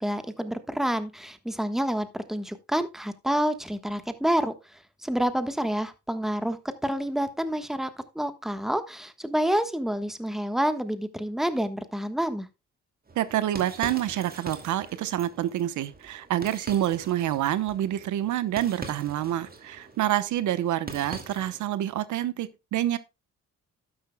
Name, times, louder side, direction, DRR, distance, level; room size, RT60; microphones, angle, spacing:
voice 1, 0.0-12.5, equal, ahead, 1.3 m, -28 dB
sound 1, 13.1-21.7, right 3 dB, 30° right, 2.4 m, -43 dB
voice 2, 13.2-23.0, right 12 dB, 75° right, 1.0 m, -27 dB
12.0 x 10.0 x 2.2 m
cardioid pair, 90°, 30 cm